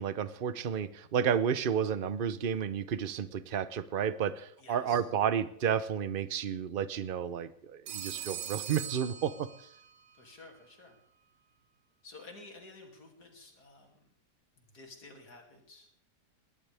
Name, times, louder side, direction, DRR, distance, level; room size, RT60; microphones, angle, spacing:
voice 1, 0.0-9.5, right 8 dB, 45° right, 14 dB, 0.7 m, -31 dB
voice 2, 4.6-5.0 10.2-11.0 12.0-14.0 14.6-15.9, left 3 dB, 70° left, 2 dB, 3.4 m, -52 dB
Telephone, 7.9-9.9, right 10 dB, 85° right, 1.8 m, -41 dB
21.0 x 18.0 x 3.5 m, 0.68 s
omnidirectional pair, 1.8 m